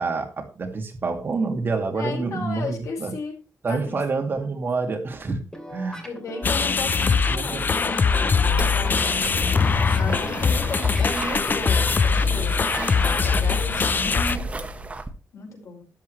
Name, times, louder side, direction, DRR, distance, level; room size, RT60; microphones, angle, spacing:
voice 1, 0.0-3.1 3.6-5.4 5.7-6.1 7.3-7.7, right 4 dB, 40° right, 2.3 m, -27 dB
voice 2, 1.9-3.4 3.7-4.0 6.0-9.5 9.9-14.5 15.3-15.8, left 3 dB, 65° left, 5.0 m, -35 dB
sound 1, 5.5-13.4, equal, 10° left, 2.9 m, -39 dB
sound 2, 6.4-14.4, left 5 dB, 35° left, 0.6 m, -22 dB
sound 3, 8.5-15.1, right 2 dB, 25° right, 1.3 m, -34 dB
13.0 x 11.0 x 3.2 m
wide cardioid pair, 135°, 6 cm